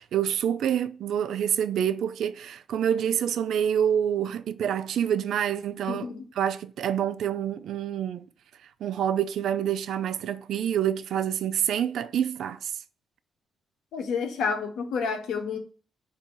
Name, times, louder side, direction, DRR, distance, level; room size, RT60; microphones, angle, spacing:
voice 1, 0.0-6.1 6.4-8.3 8.8-12.7, right 9 dB, 75° right, 0.3 m, -27 dB
voice 2, 5.9-6.3 13.9-15.6, left 5 dB, 90° left, 0.8 m, -29 dB
5.0 x 2.7 x 3.7 m
cardioid pair, 140°, 0 cm